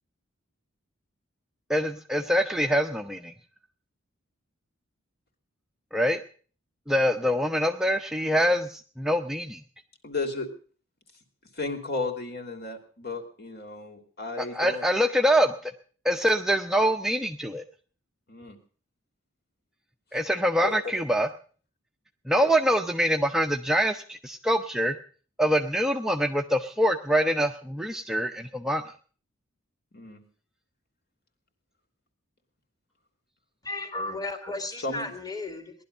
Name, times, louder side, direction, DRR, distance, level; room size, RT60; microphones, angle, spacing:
voice 1, 1.7-3.3 5.9-6.2 6.9-9.6 14.4-15.7 16.0-17.6 20.1-21.3 22.3-25.0 25.4-28.8, equal, ahead, 5 dB, 0.7 m, -24 dB
voice 2, 10.0-10.5 11.5-14.8 18.3-18.6 20.1-20.2 20.6-20.7 22.4-22.5 29.9-30.2 34.8-35.1, left 3 dB, 50° left, 6 dB, 3.0 m, -34 dB
voice 3, 33.6-35.7, left 2 dB, 20° left, 6 dB, 2.3 m, -34 dB
19.0 x 11.5 x 6.6 m, 0.42 s
head